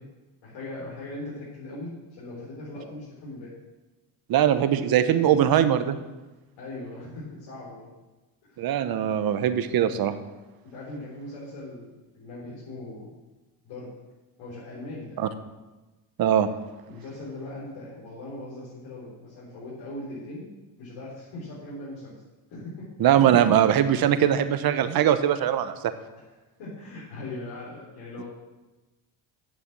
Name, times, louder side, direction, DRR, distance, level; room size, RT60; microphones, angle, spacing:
voice 1, 0.4-3.5 6.6-7.9 8.4-8.6 10.7-13.2 13.6-13.9 14.4-15.3 16.8-20.5 20.8-22.1 22.5-22.9 26.6-28.2, left 2 dB, 75° left, -8 dB, 4.4 m, -39 dB
voice 2, 4.3-6.0 8.6-10.1 15.2-15.3 16.2-16.5 23.0-25.7, right 10 dB, 50° right, 10 dB, 1.0 m, -21 dB
8.8 x 6.9 x 7.4 m, 1.1 s
cardioid pair, 100°, 46 cm